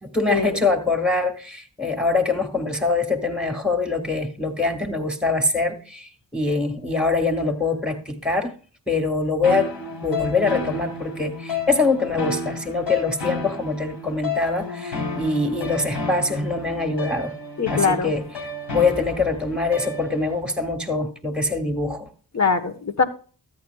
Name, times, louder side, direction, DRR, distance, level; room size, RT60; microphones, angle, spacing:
voice 1, 0.0-8.5 8.9-9.7 10.0-17.3 17.7-18.2 18.7-22.1, left 3 dB, ahead, 1.8 m, -24 dB
sound 1, 9.4-20.4, left 3 dB, 75° left, 3.8 m, -31 dB
voice 2, 17.6-18.1 22.3-23.0, left 5 dB, 35° left, 1.2 m, -22 dB
13.0 x 9.4 x 2.3 m
cardioid pair, 45°, 44 cm